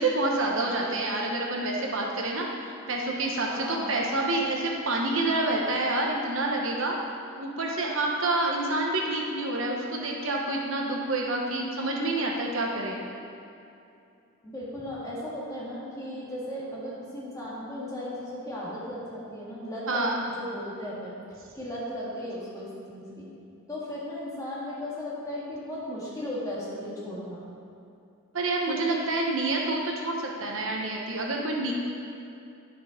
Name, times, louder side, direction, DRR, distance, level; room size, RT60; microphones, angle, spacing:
voice 1, 0.0-7.0 7.4-13.0 19.9-20.2 28.3-31.7, right 2 dB, 60° right, -1 dB, 1.0 m, -28 dB
voice 2, 3.5-3.9 14.4-20.1 20.4-21.1 21.5-23.3 23.7-27.4 28.7-29.0, left 1 dB, 15° left, -7 dB, 2.0 m, -36 dB
10.5 x 5.4 x 5.1 m, 2.6 s
head